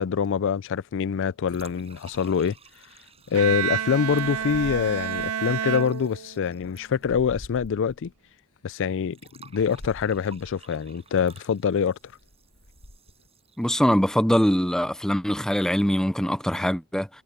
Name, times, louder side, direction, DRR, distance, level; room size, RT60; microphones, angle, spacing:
voice 1, 0.0-2.5 3.3-8.1 8.6-9.2 9.4-12.0, left 7 dB, 60° left, 0.4 m, -25 dB
sound 1, 1.5-2.7 3.5-5.4 5.9-8.1 8.8-8.9 9.5-10.6 11.2-11.5 11.9-13.3, equal, 90° left, 7.1 m, -47 dB
sound 2, 1.5-7.7 7.9-8.0 9.1-14.2, right 6 dB, 30° right, 7.5 m, -54 dB
Bowed string instrument, 3.3-6.7, right 8 dB, 85° right, 0.8 m, -30 dB
voice 2, 13.6-17.1, equal, 5° left, 0.6 m, -23 dB
head